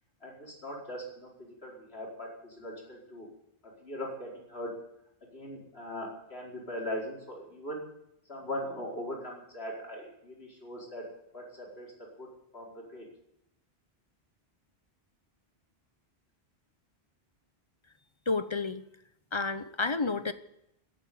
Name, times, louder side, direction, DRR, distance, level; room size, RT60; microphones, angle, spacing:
voice 1, 0.2-3.3 3.8-4.7 5.3-7.8 8.3-11.0 11.3-12.3 12.5-13.0, equal, 70° left, -2 dB, 5.1 m, -40 dB
voice 2, 18.3-18.8 19.3-20.3, left 3 dB, 30° left, 12 dB, 0.9 m, -30 dB
14.5 x 9.0 x 9.6 m, 0.81 s
omnidirectional pair, 1.1 m